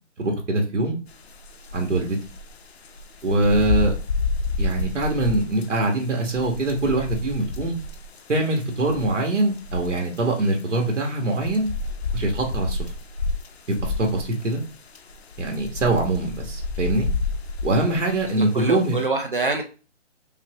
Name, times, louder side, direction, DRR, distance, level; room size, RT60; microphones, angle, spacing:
voice 1, 0.2-1.0 1.7-2.2 3.2-4.0 4.6-7.7 8.3-11.7 12.1-12.8 13.7-14.6 15.4-17.1 17.6-19.0, right 2 dB, 75° right, 2 dB, 1.4 m, -23 dB
sound 1, 1.1-19.0, left 3 dB, 60° left, 0.6 m, -30 dB
voice 2, 18.4-19.6, right 3 dB, 45° right, 3 dB, 0.6 m, -25 dB
5.6 x 2.2 x 2.9 m, 0.33 s
hypercardioid pair, 175°, 37 cm